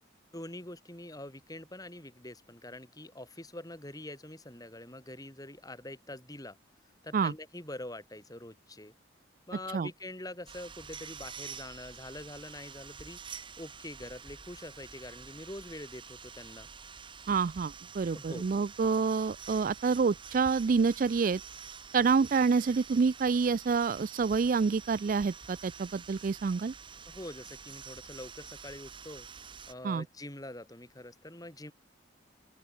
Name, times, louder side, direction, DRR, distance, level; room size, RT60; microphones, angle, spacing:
voice 1, 0.3-6.6 7.0-8.9 9.5-13.2 13.6-16.7 18.1-18.4 27.1-29.3 29.7-31.7, left 1 dB, 20° left, 4.3 m, -45 dB
Distant Angle Grinder, 10.5-29.7, right 6 dB, 25° right, 1.7 m, -48 dB
voice 2, 17.3-21.4 21.9-26.7 29.8-30.0, right 5 dB, 45° right, 0.3 m, -27 dB
open air
head